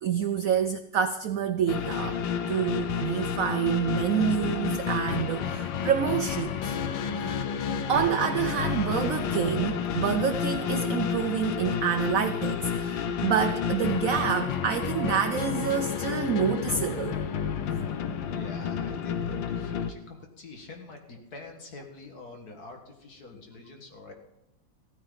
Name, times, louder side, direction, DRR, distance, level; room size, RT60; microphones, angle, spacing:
voice 1, 0.0-2.2 2.5-6.8 7.1-7.5 7.9-17.2, right 8 dB, 80° right, 10 dB, 0.7 m, -28 dB
sound 1, 1.7-19.9, left 7 dB, 80° left, 1.5 m, -30 dB
voice 2, 18.2-24.1, left 3 dB, 50° left, 3 dB, 2.1 m, -46 dB
15.5 x 13.5 x 3.9 m, 0.85 s
omnidirectional pair, 2.1 m